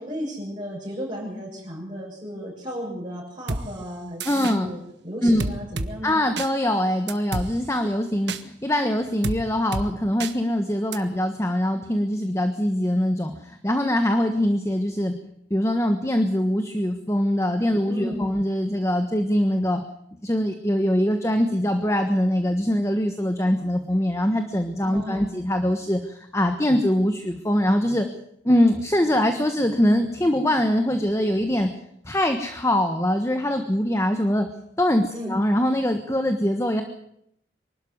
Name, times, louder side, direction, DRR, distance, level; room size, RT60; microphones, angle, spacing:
voice 1, 0.0-6.2 17.9-18.4 24.9-25.4 35.1-35.4, equal, 25° right, -7 dB, 7.3 m, -34 dB
sound 1, 3.5-3.6 4.2-4.6 5.4-5.9 6.4-6.5 7.1-7.5 8.3-8.4 9.2-9.4 9.7-9.9 10.2-10.3 10.9-11.0, right 3 dB, 70° right, 1.5 m, -28 dB
voice 2, 4.2-4.7 5.2-5.4 6.0-15.1 15.5-19.8 20.2-28.1 28.4-31.7 32.0-34.5 34.8-36.8, equal, 15° left, 6 dB, 1.3 m, -23 dB
24.0 x 12.5 x 9.6 m, 0.75 s
head